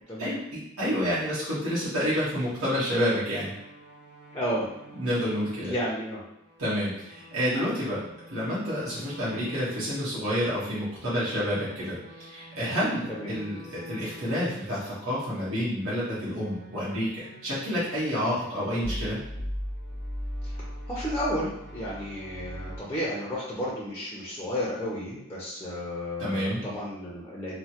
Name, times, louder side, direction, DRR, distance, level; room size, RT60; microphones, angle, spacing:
voice 1, 0.2-3.5 4.9-5.7 6.6-19.2 26.2-26.6, equal, 75° right, -10 dB, 1.2 m, -29 dB
sound 1, 3.0-10.1 10.4-14.6 15.1-22.8, equal, 55° right, 0.6 m, -42 dB
voice 2, 4.3-4.7 5.6-6.2 7.5-7.6 13.1-13.3 20.9-27.6, equal, 15° left, -6 dB, 0.5 m, -32 dB
3.1 x 2.1 x 2.8 m, 0.81 s
head